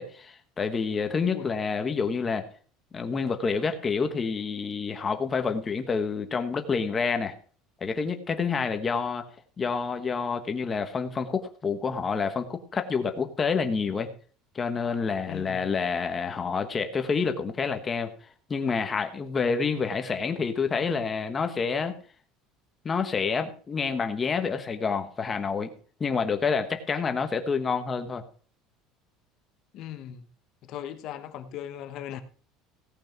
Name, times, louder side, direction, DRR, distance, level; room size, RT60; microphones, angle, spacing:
voice 1, 0.0-2.5 2.9-7.3 7.8-9.3 9.6-14.1 14.5-18.1 18.5-21.9 22.8-25.7 26.0-28.2, left 5 dB, 15° left, 7 dB, 1.2 m, -28 dB
voice 2, 15.3-15.7 29.7-30.3 30.6-32.2, left 10 dB, 40° left, 8 dB, 1.2 m, -38 dB
17.0 x 6.2 x 6.0 m, 0.43 s
cardioid pair, 180°, 0 cm